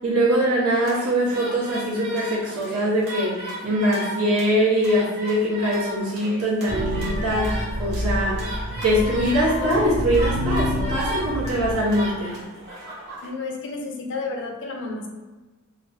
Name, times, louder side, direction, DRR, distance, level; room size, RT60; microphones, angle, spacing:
voice 1, 0.0-8.5 8.8-12.3, equal, 90° right, -6 dB, 0.9 m, -22 dB
sound 1, 0.8-13.3, right 1 dB, 50° right, 0.9 m, -36 dB
sound 2, 6.7-11.8, equal, 30° right, 0.5 m, -27 dB
voice 2, 13.2-15.1, left 3 dB, 55° left, 2 dB, 0.4 m, -31 dB
3.0 x 2.0 x 2.6 m, 1.2 s
head